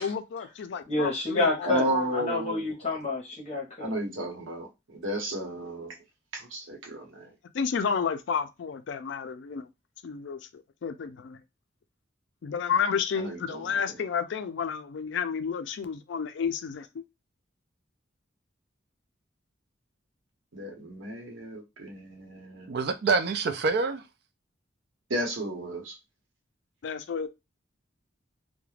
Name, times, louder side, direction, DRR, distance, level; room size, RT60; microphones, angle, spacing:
voice 1, 0.0-2.1 7.5-9.7 10.0-10.4 10.8-11.4 12.4-16.9 26.8-27.3, left 6 dB, 65° left, 0.3 m, -31 dB
voice 2, 0.8-1.9 2.1-3.9, left 2 dB, 35° left, 0.8 m, -28 dB
voice 3, 1.6-2.6 3.8-6.0 6.3-7.3 13.1-14.1 20.5-22.7 25.1-26.0, right 1 dB, 85° right, 0.9 m, -33 dB
voice 4, 22.7-24.0, right 4 dB, 55° right, 0.4 m, -26 dB
2.3 x 2.1 x 3.1 m
head